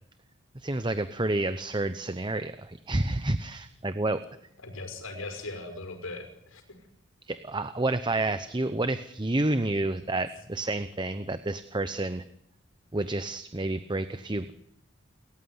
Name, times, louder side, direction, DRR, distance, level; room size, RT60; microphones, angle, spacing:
voice 1, 0.5-4.2 7.3-12.2 12.9-14.5, right 2 dB, 20° right, 11 dB, 0.8 m, -29 dB
voice 2, 4.6-6.8, left 2 dB, 85° left, 7 dB, 5.8 m, -39 dB
29.0 x 14.5 x 9.6 m, 0.80 s
head